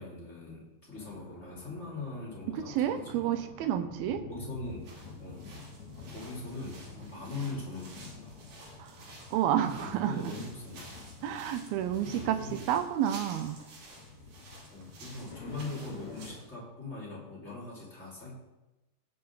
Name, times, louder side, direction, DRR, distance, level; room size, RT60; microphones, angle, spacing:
voice 1, 0.0-3.4 4.3-5.7 6.1-8.4 9.6-10.9 12.0-12.6 14.7-18.3, left 3 dB, 15° left, -6 dB, 3.3 m, -41 dB
sound 1, 0.9-16.4, left 4 dB, 45° left, 3.4 m, -49 dB
voice 2, 2.5-4.2 8.8-8.9 9.3-10.3 11.2-13.6, right 10 dB, 80° right, 9 dB, 2.3 m, -30 dB
sound 2, 4.6-16.5, right 2 dB, 50° right, 3.6 m, -52 dB
17.5 x 6.5 x 3.8 m, 1.0 s
omnidirectional pair, 4.8 m